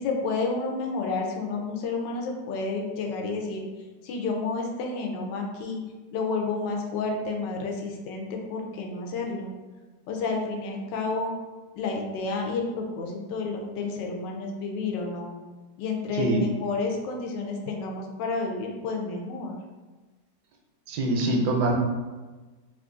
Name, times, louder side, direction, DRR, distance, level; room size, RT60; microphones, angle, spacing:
voice 1, 0.0-3.6 4.0-5.8 6.1-9.5 10.1-11.3 11.7-15.3 15.8-19.6, left 3 dB, 85° left, 1 dB, 1.3 m, -30 dB
voice 2, 20.9-21.8, right 2 dB, 75° right, 1 dB, 1.1 m, -24 dB
3.1 x 2.4 x 3.7 m, 1.3 s
omnidirectional pair, 1.9 m